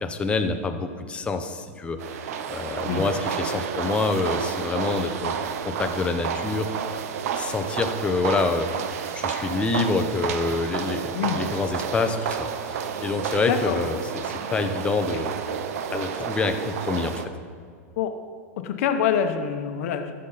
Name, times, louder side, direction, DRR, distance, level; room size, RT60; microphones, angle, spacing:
voice 1, 0.0-2.0 2.5-5.3 5.6-6.7 7.3-15.4 15.9-17.2, left 3 dB, 15° left, 6 dB, 0.6 m, -27 dB
sound 1, 2.0-17.3, right 7 dB, 75° right, 0.7 m, -31 dB
voice 2, 18.6-20.1, left 8 dB, 65° left, 7 dB, 0.9 m, -25 dB
14.5 x 6.6 x 4.0 m, 2.1 s
supercardioid pair, 130°, 8 cm